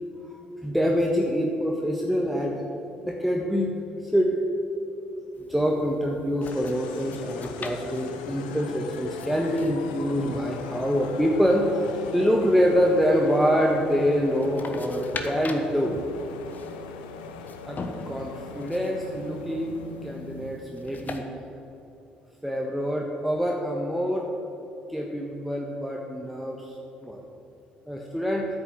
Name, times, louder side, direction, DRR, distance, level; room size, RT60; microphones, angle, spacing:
voice 1, 0.3-3.7 4.0-4.4 4.7-4.8 5.5-16.0 17.7-17.8 18.1-19.7 20.0-21.2 22.4-24.3 24.9-27.2 27.9-28.5, equal, ahead, -1 dB, 1.4 m, -25 dB
sound 1, 5.3-21.2, left 3 dB, 40° left, 1.3 m, -43 dB
sound 2, 6.4-20.7, left 5 dB, 80° left, 0.7 m, -39 dB
8.9 x 7.1 x 8.9 m, 3.0 s
hypercardioid pair, 50°, 5 cm